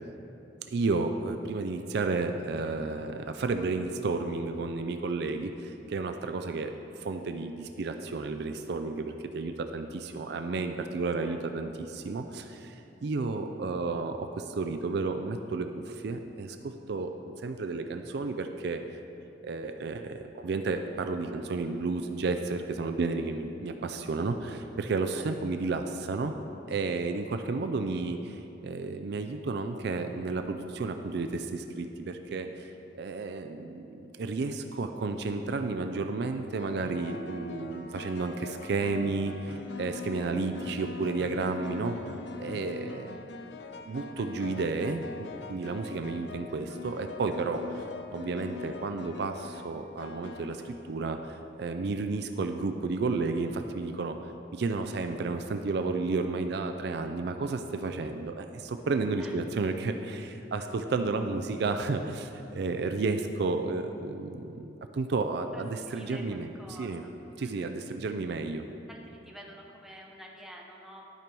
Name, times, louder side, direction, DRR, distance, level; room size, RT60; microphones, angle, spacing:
voice 1, 0.7-6.7 7.0-18.8 19.4-26.3 26.7-42.0 42.4-43.3 43.9-47.9 48.1-54.2 54.5-64.7 64.9-67.0 67.4-68.6, right 3 dB, 60° right, 7 dB, 0.4 m, -32 dB
sound 1, 35.0-35.3 36.6-51.4, left 4 dB, 60° left, 0.5 m, -43 dB
voice 2, 65.5-67.1 67.4-67.7 68.9-71.0, equal, ahead, -2 dB, 0.8 m, -49 dB
12.0 x 5.3 x 4.5 m, 3.0 s
head